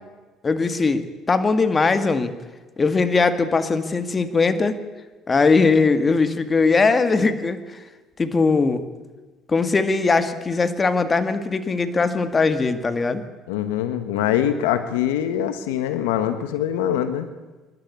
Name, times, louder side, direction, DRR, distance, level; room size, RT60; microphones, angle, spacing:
voice 1, 0.4-2.3 2.8-4.8 5.3-7.9 8.2-8.9 9.5-13.2, left 4 dB, 30° left, 10 dB, 1.9 m, -20 dB
voice 2, 13.5-17.3, left 10 dB, 90° left, 11 dB, 1.1 m, -23 dB
26.0 x 12.0 x 8.6 m, 1.2 s
supercardioid pair, 75°, 0 cm